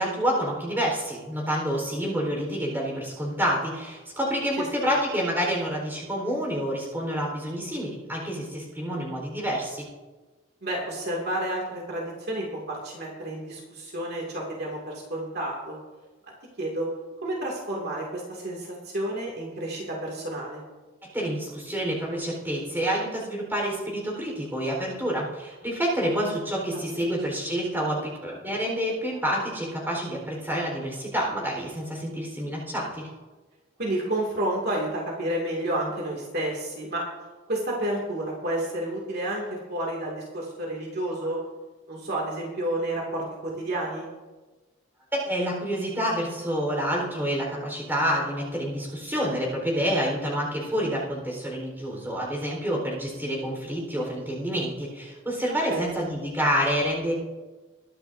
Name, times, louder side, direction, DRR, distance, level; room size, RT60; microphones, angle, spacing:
voice 1, 0.0-9.9 21.0-33.1 45.1-57.1, equal, 10° right, -2 dB, 4.0 m, -28 dB
voice 2, 4.5-4.9 10.6-15.8 16.6-16.9 17.2-20.6 26.7-27.1 33.8-37.0 37.5-41.4 41.9-44.1 55.5-55.9, right 1 dB, 50° right, -2 dB, 2.3 m, -30 dB
22.0 x 10.5 x 2.7 m, 1.2 s
head